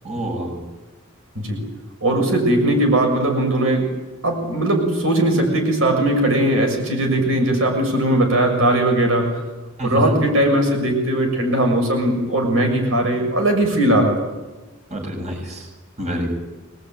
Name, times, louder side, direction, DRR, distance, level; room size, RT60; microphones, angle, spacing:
voice 1, 0.0-0.6 9.8-10.2 14.9-15.7 16.0-16.3, equal, 35° right, 1 dB, 7.5 m, -26 dB
voice 2, 2.0-3.9 4.2-9.4 9.8-14.3, right 1 dB, 70° right, 3 dB, 6.9 m, -19 dB
25.5 x 21.0 x 9.3 m, 1.2 s
head